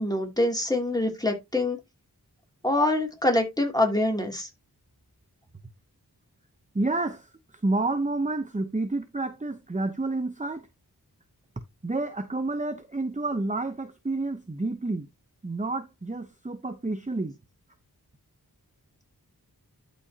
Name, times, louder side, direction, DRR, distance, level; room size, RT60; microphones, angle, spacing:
voice 1, 0.0-1.8 2.6-4.5, left 1 dB, 10° left, 2.7 m, -25 dB
voice 2, 6.7-10.7 11.8-15.1 15.4-17.4, right 2 dB, 20° right, 0.8 m, -29 dB
12.0 x 5.3 x 2.8 m
wide cardioid pair, 60°, 38 cm